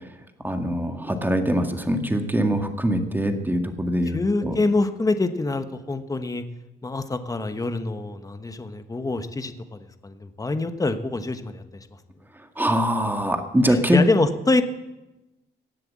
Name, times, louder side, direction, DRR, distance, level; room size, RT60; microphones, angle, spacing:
voice 1, 0.4-4.6 12.6-14.0, equal, 10° right, 5 dB, 1.8 m, -23 dB
voice 2, 4.1-6.4 6.8-11.6 13.7-14.6, left 2 dB, 15° left, 9 dB, 1.1 m, -25 dB
17.5 x 7.7 x 7.5 m, 1.0 s
cardioid pair, 90°, 20 cm